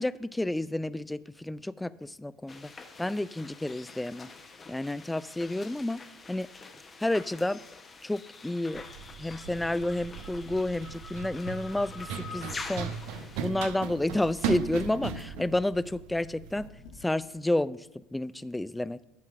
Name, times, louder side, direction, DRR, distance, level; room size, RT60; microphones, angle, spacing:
voice 1, 0.0-2.7 3.0-4.3 4.7-6.0 6.3-6.5 7.0-7.6 8.0-8.8 9.2-13.0 13.4-16.7 17.0-19.0, left 1 dB, 5° left, 17 dB, 0.3 m, -30 dB
sound 1, 2.5-13.5, left 4 dB, 25° left, 0.9 m, -46 dB
Run, 8.7-16.7, right 8 dB, 60° right, 0.6 m, -38 dB
sound 2, 12.0-16.3 16.6-17.4, left 3 dB, 55° left, 1.5 m, -51 dB
12.0 x 4.6 x 5.9 m, 0.92 s
figure-of-eight pair, 70°, 0 cm